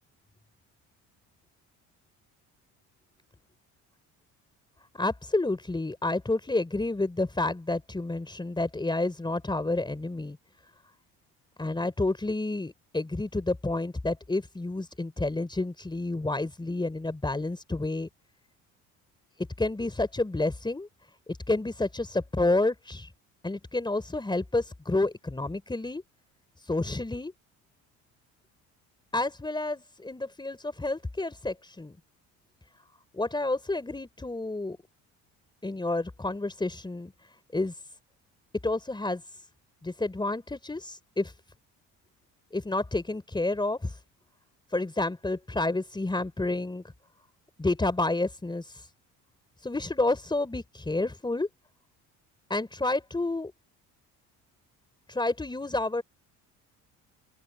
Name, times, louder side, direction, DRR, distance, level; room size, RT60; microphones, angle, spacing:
voice 1, 4.9-10.4 11.6-18.1 19.6-20.9 21.3-23.1 23.4-26.0 26.7-27.3 29.1-32.0 33.1-34.8 35.6-37.1 37.5-37.7 38.6-39.2 39.8-41.3 42.5-43.9 44.7-46.8 47.6-48.7 49.6-51.5 52.5-53.5 55.1-56.0, left 2 dB, 15° left, 4.3 m, -29 dB
open air
cardioid pair, 95°, 34 cm